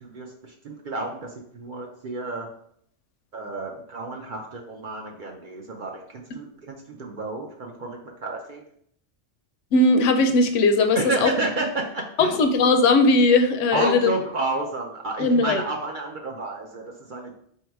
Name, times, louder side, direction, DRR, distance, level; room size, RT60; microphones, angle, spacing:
voice 1, 0.0-2.5 3.3-8.6 10.9-12.4 13.7-17.3, right 2 dB, 55° right, 1 dB, 0.6 m, -31 dB
voice 2, 9.7-11.3 12.2-14.1 15.2-15.6, left 3 dB, 80° left, 7 dB, 0.9 m, -18 dB
4.2 x 2.8 x 4.5 m, 0.68 s
omnidirectional pair, 1.3 m